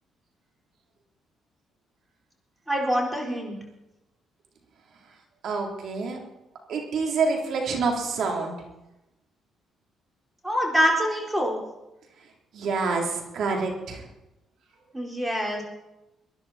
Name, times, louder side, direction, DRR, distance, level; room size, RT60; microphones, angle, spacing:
voice 1, 2.7-3.5 10.4-11.6 14.9-15.6, equal, 10° right, -1 dB, 4.5 m, -25 dB
voice 2, 5.4-6.2 6.7-8.6 12.5-14.0, right 4 dB, 70° right, 1 dB, 3.6 m, -27 dB
23.0 x 11.0 x 4.4 m, 0.95 s
cardioid pair, 90°, 0 cm